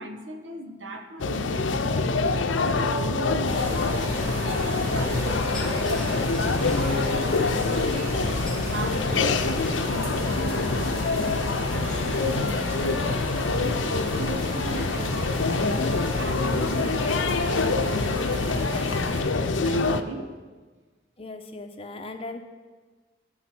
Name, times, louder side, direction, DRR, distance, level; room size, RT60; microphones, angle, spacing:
voice 1, 0.0-8.2 8.5-9.4 9.8-12.4 12.7-15.2 16.1-20.3, right 2 dB, 70° right, 5 dB, 1.2 m, -39 dB
sound 1, 1.2-20.0, left 3 dB, 75° left, 0.6 m, -25 dB
sound 2, 3.5-19.2, equal, 30° right, 4.3 m, -34 dB
sound 3, 4.9-12.4, left 1 dB, 5° left, 1.8 m, -41 dB
voice 2, 16.7-17.3 21.2-22.4, left 2 dB, 30° left, 5 dB, 1.0 m, -38 dB
16.0 x 6.5 x 6.0 m, 1.4 s
head